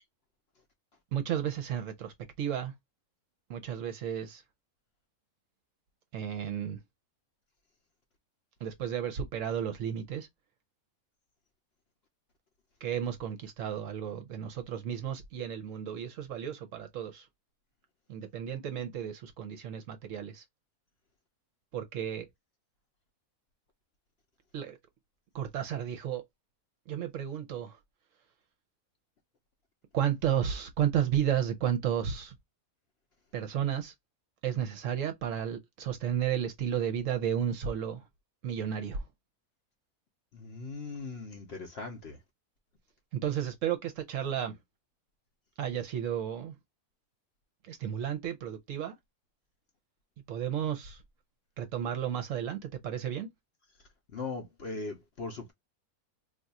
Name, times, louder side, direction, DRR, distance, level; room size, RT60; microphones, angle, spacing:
voice 1, 1.1-2.7 3.5-4.4 6.1-6.8 8.6-10.3 12.8-17.3 18.1-20.4 21.7-22.3 24.5-24.8 25.3-26.2 26.9-27.8 29.9-32.3 33.3-33.9 34.4-38.0 38.4-39.0 43.1-44.6 45.6-46.5 47.6-48.9 50.3-51.0 51.6-53.3, right 9 dB, 65° right, 0.9 m, -33 dB
voice 2, 40.3-42.2 54.1-55.5, left 3 dB, 55° left, 0.8 m, -39 dB
2.6 x 2.4 x 4.0 m
omnidirectional pair, 1.6 m